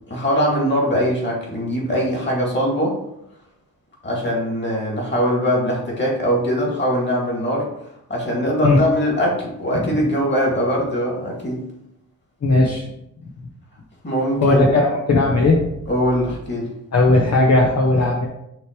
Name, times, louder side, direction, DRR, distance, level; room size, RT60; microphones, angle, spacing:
voice 1, 0.1-3.0 4.0-7.7 8.1-11.6 14.0-14.7 15.9-16.7, equal, 35° left, -2 dB, 2.4 m, -21 dB
voice 2, 12.4-12.8 14.4-15.6 16.9-18.3, left 2 dB, 55° left, -2 dB, 1.0 m, -16 dB
6.3 x 3.4 x 4.6 m, 0.80 s
wide cardioid pair, 90°, 31 cm